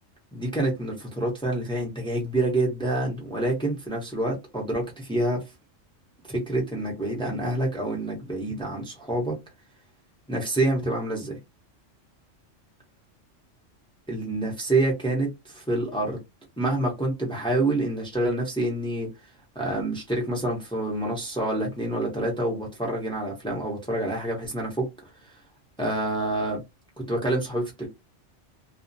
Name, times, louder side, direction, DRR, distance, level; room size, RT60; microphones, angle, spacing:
voice 1, 0.3-5.4 6.3-9.3 10.3-11.4 14.1-16.2 16.6-19.1 19.5-24.8 25.8-26.6 27.1-27.9, right 1 dB, 5° left, 0.6 m, -27 dB
2.4 x 2.0 x 2.6 m
omnidirectional pair, 1.3 m